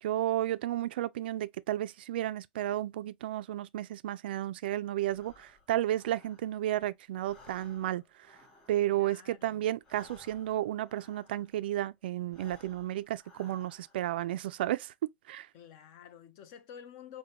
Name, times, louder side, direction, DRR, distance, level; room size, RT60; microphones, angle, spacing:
voice 1, 0.0-8.0 8.7-14.9 15.3-15.5, right 13 dB, 75° right, 0.3 m, -32 dB
Breathing, 5.1-6.8 7.1-11.7 12.2-14.1, left 3 dB, 20° left, 2.4 m, -59 dB
voice 2, 8.9-9.7 15.5-17.2, left 9 dB, 45° left, 0.6 m, -50 dB
5.0 x 2.2 x 2.8 m
supercardioid pair, 165°, 5 cm